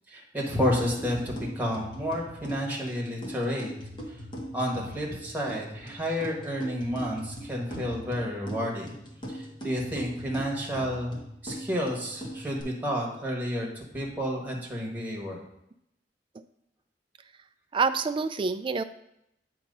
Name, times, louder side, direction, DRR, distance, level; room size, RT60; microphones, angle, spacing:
voice 1, 0.1-3.7 4.5-8.9 9.3-15.4, equal, 10° right, -2 dB, 1.3 m, -31 dB
sound 1, 0.6-12.6, equal, 25° left, 1.1 m, -41 dB
voice 2, 17.7-18.8, right 4 dB, 30° right, 11 dB, 0.3 m, -27 dB
8.1 x 2.9 x 5.3 m, 0.80 s
head